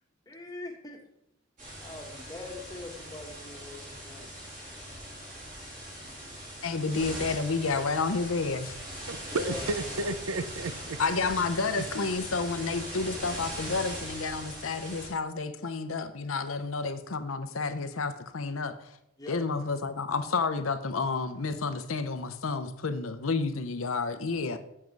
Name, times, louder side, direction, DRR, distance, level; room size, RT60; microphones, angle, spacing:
voice 1, 0.3-1.0 1.8-4.3 9.3-9.6 19.2-19.4, left 2 dB, 20° left, 1.2 m, -42 dB
sound 1, 1.6-15.1, equal, 40° right, 3.2 m, -40 dB
voice 2, 6.6-8.8 11.0-18.9 19.3-24.6, left 4 dB, 80° left, 0.7 m, -30 dB
voice 3, 9.1-11.5 11.7-11.9, right 2 dB, 80° right, 0.6 m, -33 dB
7.7 x 7.5 x 4.6 m
head